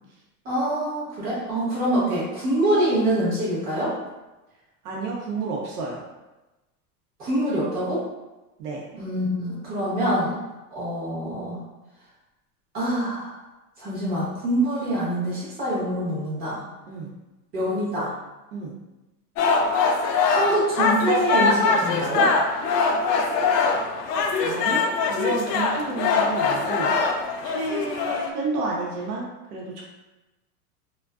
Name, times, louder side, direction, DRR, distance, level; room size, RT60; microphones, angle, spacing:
voice 1, 0.4-3.9 7.2-8.0 8.9-10.3 10.7-11.6 12.7-13.3 13.8-16.6 17.5-18.1 20.3-22.3, right 1 dB, 20° right, -8 dB, 0.8 m, -25 dB
voice 2, 4.8-6.0 8.6-8.8 16.9-17.1 18.5-18.7 24.4-27.0 27.4-29.8, right 3 dB, 75° right, -3 dB, 0.8 m, -31 dB
sound 1, 19.4-28.3, left 4 dB, 85° left, 0.5 m, -22 dB
2.4 x 2.3 x 2.2 m, 1.1 s
supercardioid pair, 150°, 46 cm